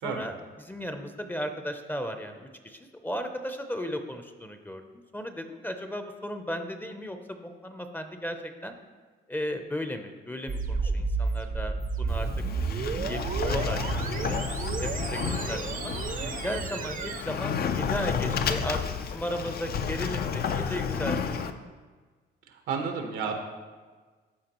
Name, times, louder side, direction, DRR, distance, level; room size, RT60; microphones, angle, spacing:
voice 1, 0.0-8.7 9.3-12.3 12.7-14.2 14.8-15.9 16.4-21.3, equal, 10° left, 7 dB, 0.6 m, -35 dB
sound 1, 10.5-17.2, right 4 dB, 40° right, 0.6 m, -31 dB
Sliding door, 12.1-21.5, left 6 dB, 50° left, 0.5 m, -31 dB
voice 2, 16.2-16.6 22.5-23.3, right 5 dB, 85° right, 4 dB, 1.1 m, -33 dB
13.0 x 4.6 x 3.0 m, 1.4 s
cardioid pair, 90°, 20 cm